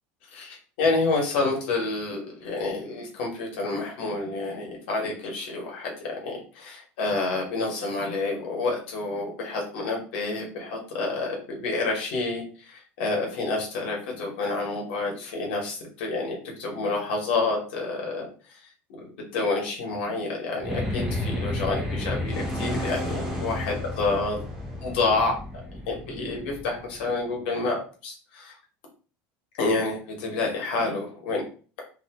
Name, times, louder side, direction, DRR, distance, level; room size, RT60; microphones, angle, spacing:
voice 1, 0.3-18.6 19.3-24.4 24.8-25.4 25.7-28.5 29.6-31.4, left 3 dB, 80° left, 0 dB, 1.1 m, -28 dB
sound 1, 20.6-27.2, left 1 dB, 5° right, 0.6 m, -32 dB
2.7 x 2.2 x 2.8 m, 0.39 s
cardioid pair, 180°, 6 cm